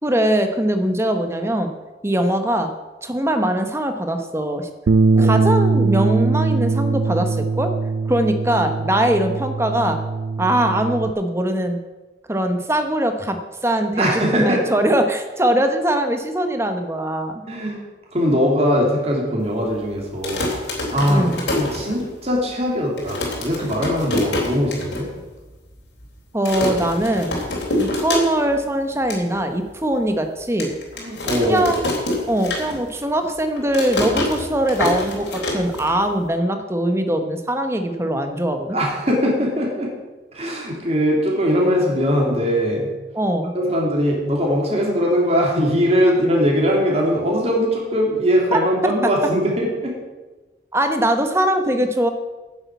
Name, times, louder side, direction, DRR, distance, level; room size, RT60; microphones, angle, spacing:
voice 1, 0.0-1.7 2.0-2.7 3.0-4.7 5.2-7.7 8.1-10.0 10.4-11.8 12.3-17.4 21.1-21.4 26.3-27.4 27.8-30.7 31.4-31.8 32.3-38.8 43.1-43.5 50.7-52.1, right 1 dB, 15° right, 6 dB, 1.1 m, -21 dB
Bass guitar, 4.9-11.1, right 3 dB, 65° right, 0.4 m, -20 dB
voice 2, 5.2-5.5 14.0-14.9 17.5-17.8 18.1-20.5 20.9-21.3 21.6-25.1 31.0-31.7 38.7-39.9 40.3-42.9 43.5-49.9, equal, 35° right, -2 dB, 3.0 m, -20 dB
sound 1, 20.1-22.4 22.7-22.8 23.0-25.0 25.4-25.5 25.7-26.1 26.4-28.6 28.9-29.2 29.7-29.8 30.6-33.0 33.3-36.3, left 1 dB, 70° left, 3.6 m, -26 dB
9.9 x 8.3 x 8.3 m, 1.2 s
head